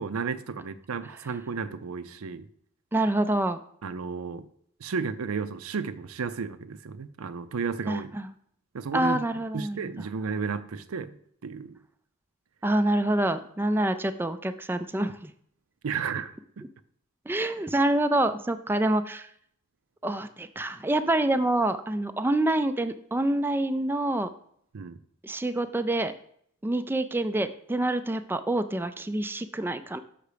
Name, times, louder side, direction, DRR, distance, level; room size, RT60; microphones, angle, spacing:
voice 1, 0.0-2.4 3.8-4.5 4.8-8.2 8.7-9.2 9.5-11.1 11.4-11.8 15.8-16.6 24.7-25.0, right 5 dB, 85° right, 13 dB, 0.5 m, -33 dB
voice 2, 2.9-3.6 7.9-8.3 8.9-10.1 12.6-15.3 17.3-19.3 20.0-24.3 25.2-26.1 26.6-30.0, right 1 dB, 10° right, 9 dB, 0.3 m, -26 dB
6.6 x 5.8 x 5.0 m, 0.66 s
head